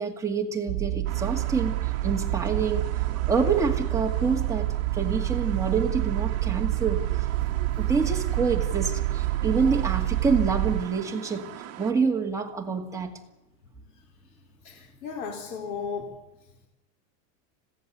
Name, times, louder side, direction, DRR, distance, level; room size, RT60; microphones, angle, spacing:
voice 1, 0.0-2.9 3.3-4.7 4.9-7.3 7.8-13.1, right 5 dB, 5° right, 0 dB, 2.0 m, -27 dB
sound 1, 0.7-10.8, right 16 dB, 55° right, 1.6 m, -27 dB
sound 2, 1.1-11.9, right 13 dB, 35° right, 1.6 m, -42 dB
voice 2, 14.6-16.1, left 5 dB, 80° left, 2 dB, 3.7 m, -35 dB
21.0 x 16.5 x 8.2 m, 0.98 s
supercardioid pair, 160°, 41 cm